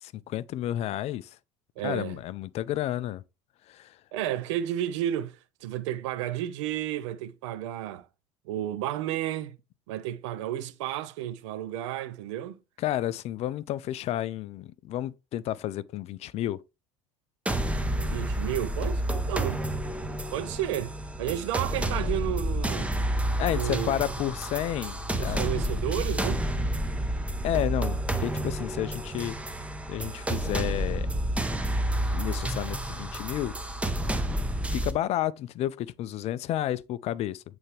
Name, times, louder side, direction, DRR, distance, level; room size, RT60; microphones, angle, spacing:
voice 1, 0.0-1.4 1.8-3.2 3.7-4.0 12.8-16.6 23.4-25.4 27.4-29.4 29.9-31.1 32.1-33.6 34.7-37.4, left 13 dB, 40° left, 0.4 m, -31 dB
voice 2, 1.8-2.2 4.1-8.1 8.4-9.6 9.9-12.6 18.0-19.0 19.3-19.6 20.3-22.9 23.5-24.1 25.2-26.4, right 12 dB, 65° right, 0.7 m, -32 dB
sound 1, 17.5-34.9, right 1 dB, 5° right, 0.9 m, -30 dB
8.6 x 3.4 x 3.2 m
figure-of-eight pair, 70°, 16 cm